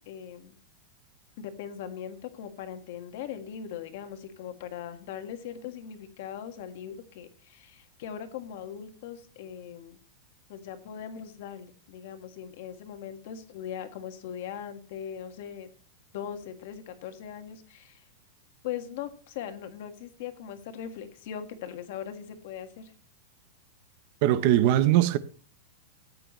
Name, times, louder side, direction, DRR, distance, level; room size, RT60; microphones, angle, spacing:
voice 1, 0.1-0.6 1.4-10.0 10.5-15.7 16.1-18.0 18.6-22.9, left 9 dB, 45° left, 1.6 m, -40 dB
voice 2, 24.2-25.2, right 13 dB, 35° right, 0.6 m, -21 dB
14.5 x 9.3 x 3.1 m
supercardioid pair, 180°, 0 cm